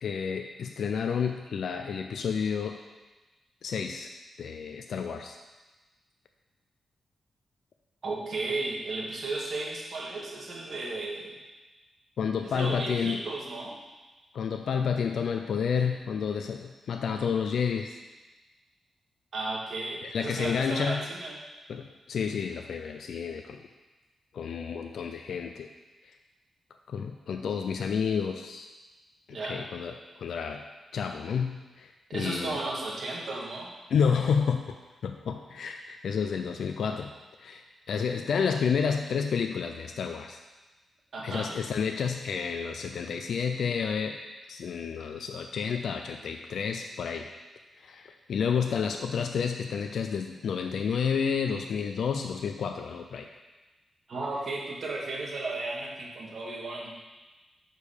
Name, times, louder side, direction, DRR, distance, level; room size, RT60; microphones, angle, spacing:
voice 1, 0.0-2.8 3.6-4.1 4.4-5.4 12.2-13.2 14.3-18.0 20.1-21.0 21.7-23.6 24.3-25.7 26.9-28.7 29.3-30.6 30.9-32.6 33.9-34.8 35.0-37.1 37.4-40.4 41.2-44.2 44.5-47.3 47.8-53.3, left 6 dB, 75° left, 5 dB, 0.4 m, -30 dB
voice 2, 8.0-11.4 12.4-13.8 19.3-21.4 29.3-29.6 32.1-33.7 41.1-41.5 54.1-56.9, right 2 dB, 55° right, -3 dB, 1.6 m, -34 dB
6.5 x 5.1 x 5.1 m, 1.2 s
wide cardioid pair, 115°, 0 cm